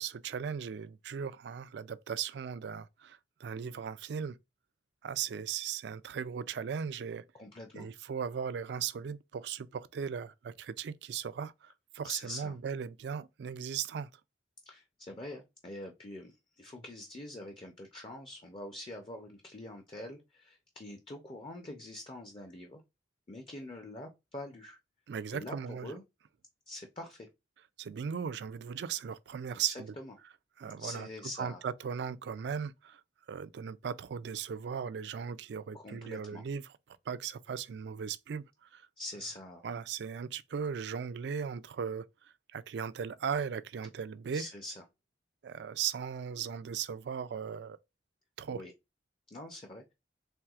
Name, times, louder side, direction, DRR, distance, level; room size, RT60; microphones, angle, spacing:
voice 1, 0.0-4.4 5.0-7.2 7.8-14.1 25.1-26.0 27.8-29.9 30.6-31.1 31.4-33.0 33.3-36.7 37.1-38.9 39.6-44.5 45.4-47.8 48.4-48.6, right 7 dB, 65° right, 0.3 m, -37 dB
voice 2, 7.3-7.9 12.0-12.6 14.7-22.8 23.3-24.8 25.3-26.0 26.7-27.3 29.7-30.1 30.8-31.6 35.7-36.4 39.0-39.6 44.3-44.8 48.5-48.7 49.3-49.9, left 1 dB, 30° left, 0.5 m, -45 dB
4.4 x 3.3 x 2.4 m
head